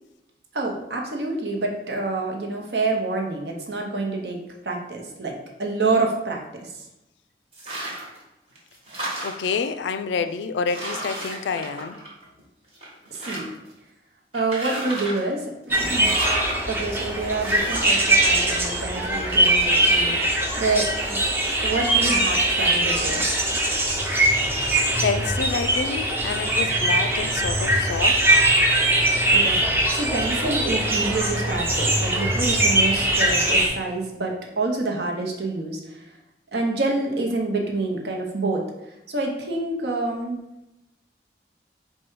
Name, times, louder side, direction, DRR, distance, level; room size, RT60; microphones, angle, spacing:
voice 1, 0.5-4.4 4.6-6.8 13.1-13.5 14.3-16.1 16.7-21.2 21.6-23.3 29.3-29.6 29.9-36.0 36.5-38.7 39.1-40.4, right 3 dB, 70° right, 0 dB, 0.8 m, -27 dB
sound 1, 7.5-8.2 8.6-9.6 10.3-10.4 10.7-12.4 12.8-13.7 14.3-15.3 15.9-16.6 17.4-18.0, right 1 dB, 35° right, 1.1 m, -32 dB
voice 2, 9.2-12.0 25.0-28.2, left 5 dB, 80° left, 10 dB, 0.3 m, -28 dB
sound 2, 15.7-33.7, right 1 dB, 10° right, 0.5 m, -21 dB
4.6 x 2.3 x 4.5 m, 0.94 s
head